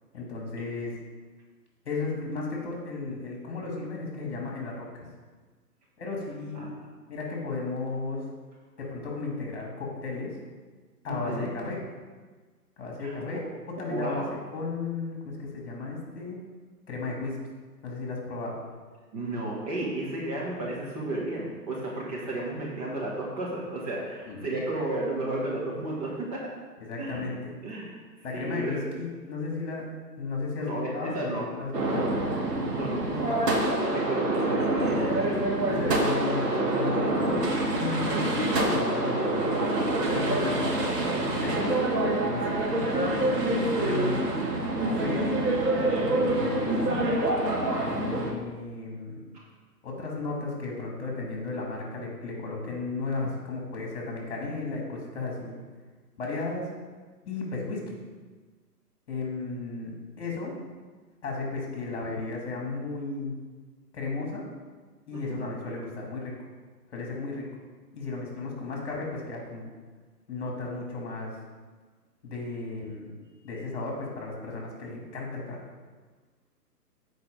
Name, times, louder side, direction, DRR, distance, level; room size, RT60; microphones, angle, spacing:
voice 1, 0.1-0.9 1.8-5.1 6.0-6.7 7.1-8.3 8.8-10.4 11.0-11.8 12.8-13.4 13.8-14.2 14.5-16.4 16.9-17.4 17.8-18.6 24.3-24.6 26.8-27.5 28.2-29.9 30.2-32.1 35.7-39.6 40.1-40.8 41.2-41.8 42.2-42.4 43.2-44.4 44.8-45.4 45.8-47.1 47.7-49.2 49.8-55.6 56.2-56.7 57.3-58.0 59.1-60.5 61.2-63.4 63.9-64.5 65.1-66.3 66.9-67.5 67.9-69.7 70.3-71.4 72.2-73.1 73.4-75.7, left 3 dB, 40° left, -1 dB, 2.3 m, -34 dB
voice 2, 11.1-11.5 13.0-13.4 13.8-14.3 19.1-26.4 27.0-27.2 27.6-28.0 28.3-28.8 30.6-31.4 32.7-33.4 33.8-35.4 35.6-35.9 49.3-49.4 65.1-65.5, right 2 dB, 25° right, -4 dB, 1.3 m, -33 dB
sound 1, 31.7-48.3, right 1 dB, 80° right, 1.9 m, -26 dB
8.1 x 4.8 x 5.0 m, 1.4 s
hypercardioid pair, 145°, 48 cm